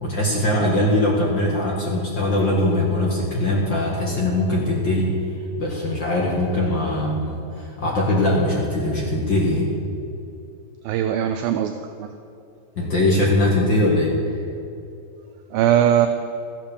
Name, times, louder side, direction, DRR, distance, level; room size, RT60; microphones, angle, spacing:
voice 1, 0.0-5.1 5.6-9.7 12.8-14.1, left 1 dB, 50° left, -3 dB, 1.4 m, -21 dB
voice 2, 10.8-12.1 15.5-16.1, right 10 dB, 80° right, 7 dB, 2.2 m, -20 dB
14.5 x 9.0 x 7.1 m, 2.6 s
omnidirectional pair, 4.7 m